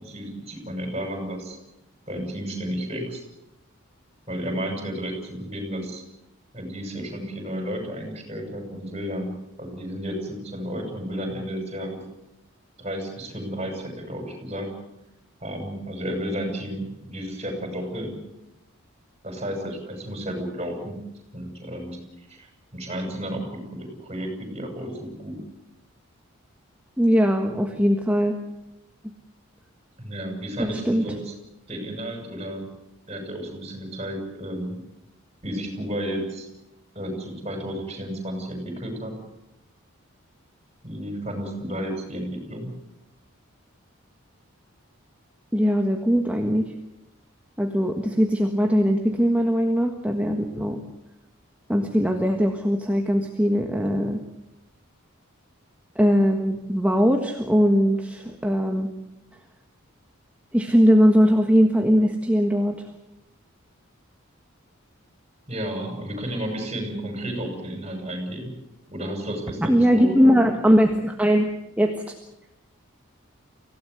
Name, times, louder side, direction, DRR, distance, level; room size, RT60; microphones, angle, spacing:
voice 1, 0.0-1.6 2.1-3.2 4.3-6.0 6.5-12.0 12.8-14.7 15.4-18.2 19.2-21.0 21.3-22.0 22.3-22.5 22.7-25.4 30.0-31.3 31.7-32.7 33.1-34.8 35.4-36.5 36.9-39.1 40.8-42.7 65.5-68.5 68.9-70.5, equal, 25° right, 3 dB, 6.5 m, -32 dB
voice 2, 27.0-28.4 30.6-31.0 45.5-46.7 47.6-50.8 51.7-54.2 55.9-58.9 60.5-62.8 69.7-72.1, equal, 5° right, 3 dB, 1.5 m, -20 dB
25.0 x 16.5 x 8.1 m, 0.90 s
head